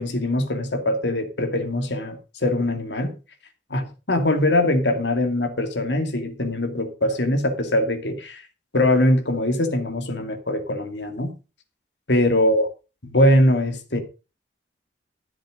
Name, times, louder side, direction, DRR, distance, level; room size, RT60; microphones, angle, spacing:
voice 1, 0.0-3.1 3.7-8.4 8.7-11.3 12.1-12.7 13.0-14.0, left 1 dB, 85° left, 2.5 m, -22 dB
13.5 x 7.7 x 5.2 m
head